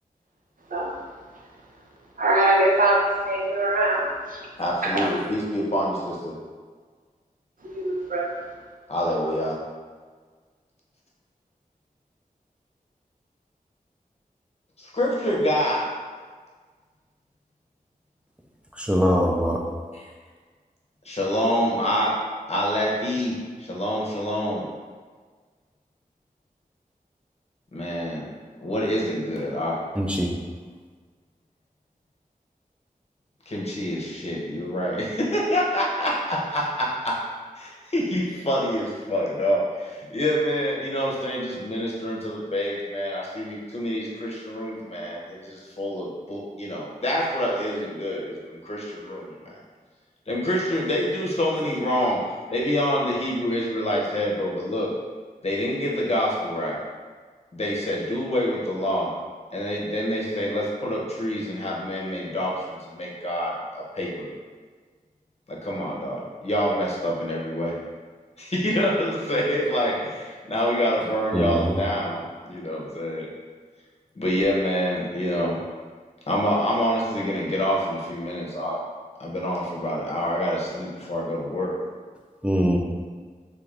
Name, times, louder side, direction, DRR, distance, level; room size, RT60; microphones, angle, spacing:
voice 1, 2.2-4.4 4.8-5.1 7.6-8.3, right 1 dB, 65° right, -1 dB, 0.6 m, -22 dB
voice 2, 4.6-6.3 8.9-9.6 14.8-15.9 19.9-20.1 21.0-22.2 22.5-24.6 27.7-28.3 28.6-29.8 33.5-37.2 37.5-49.5 50.3-52.2 52.5-54.9 55.4-56.8 57.5-59.1 59.5-64.3 65.5-67.8 68.4-73.3 74.1-75.6 76.3-78.8 79.2-81.7, equal, 45° left, -4 dB, 0.7 m, -26 dB
voice 3, 18.8-19.6 30.0-30.3 71.3-71.8 82.4-82.8, equal, 5° right, -1 dB, 0.4 m, -22 dB
3.3 x 3.3 x 2.4 m, 1.5 s
wide cardioid pair, 75°, 15 cm